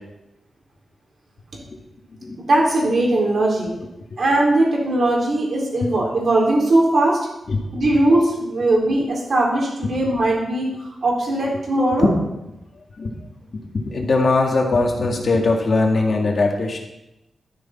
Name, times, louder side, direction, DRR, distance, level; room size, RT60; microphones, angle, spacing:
voice 1, 2.5-3.7 4.2-7.2 7.7-12.1, right 1 dB, 50° right, -2 dB, 4.0 m, -19 dB
voice 2, 13.9-16.8, left 3 dB, 45° left, 1 dB, 2.1 m, -20 dB
12.5 x 9.8 x 4.4 m, 0.92 s
wide cardioid pair, 160°, 0 cm